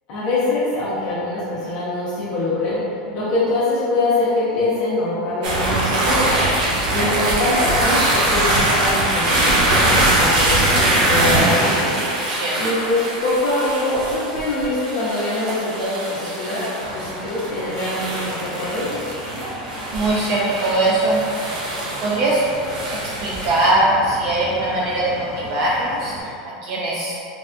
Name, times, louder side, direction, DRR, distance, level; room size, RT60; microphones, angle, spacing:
voice 1, 0.1-2.8 3.1-6.3 6.9-11.9 12.6-16.6 16.9-19.0, left 2 dB, 45° left, -10 dB, 0.7 m, -23 dB
sound 1, 5.4-23.7, right 1 dB, 75° right, 0.7 m, -22 dB
voice 2, 6.8-7.2 12.3-12.6 19.3-19.5 19.9-21.2 22.0-22.4 23.2-26.3 26.6-27.1, right 2 dB, 40° right, -5 dB, 0.4 m, -21 dB
sound 2, 16.8-26.2, equal, 15° right, 0.7 m, -36 dB
3.5 x 2.3 x 2.4 m, 2.5 s
supercardioid pair, 165°, 4 cm